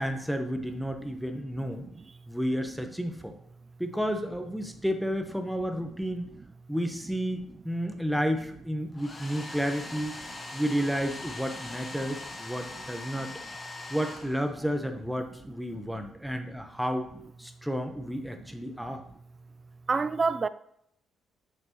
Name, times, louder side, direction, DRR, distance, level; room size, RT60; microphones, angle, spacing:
voice 1, 0.0-1.8 2.3-3.3 3.8-6.3 6.7-10.2 10.5-13.3 13.9-17.1 17.4-19.0, equal, ahead, 1.0 m, -31 dB
Domestic sounds home sounds, 8.9-14.8, left 2 dB, 30° left, 1.3 m, -41 dB
voice 2, 19.9-20.5, right 4 dB, 35° right, 0.3 m, -27 dB
8.7 x 6.0 x 3.1 m
cardioid pair, 90°, 0 cm